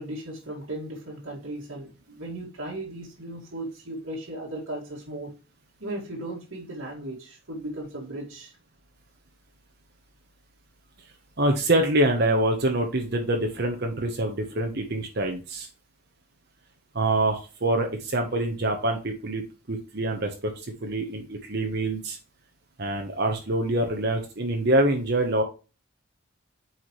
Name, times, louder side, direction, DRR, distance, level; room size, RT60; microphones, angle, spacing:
voice 1, 0.0-5.3 5.8-8.5, right 1 dB, 85° right, -4 dB, 2.3 m, -36 dB
voice 2, 11.4-15.7 16.9-19.4 19.7-22.2 22.8-25.4, right 1 dB, 50° right, 3 dB, 1.1 m, -25 dB
8.2 x 4.8 x 3.2 m, 0.32 s
head